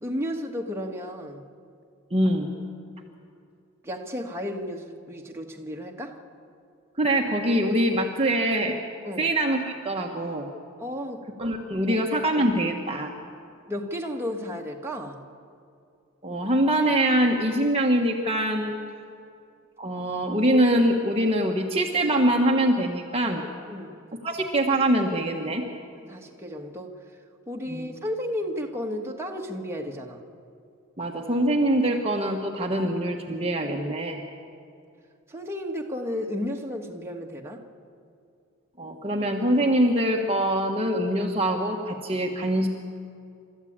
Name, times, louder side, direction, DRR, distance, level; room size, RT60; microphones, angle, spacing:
voice 1, 0.0-1.4 3.8-6.2 9.0-9.3 10.8-11.3 11.9-12.0 13.7-15.2 23.7-24.0 26.0-27.0 27.5-30.2 35.3-37.6, left 1 dB, 10° right, 0 dB, 1.7 m, -33 dB
voice 2, 2.1-2.5 7.0-8.8 9.2-10.5 11.4-13.1 16.2-18.8 19.8-23.4 24.2-25.6 27.7-27.9 31.0-34.2 38.8-42.7, right 1 dB, 25° right, 1 dB, 1.3 m, -24 dB
29.0 x 13.5 x 8.8 m, 2.5 s
head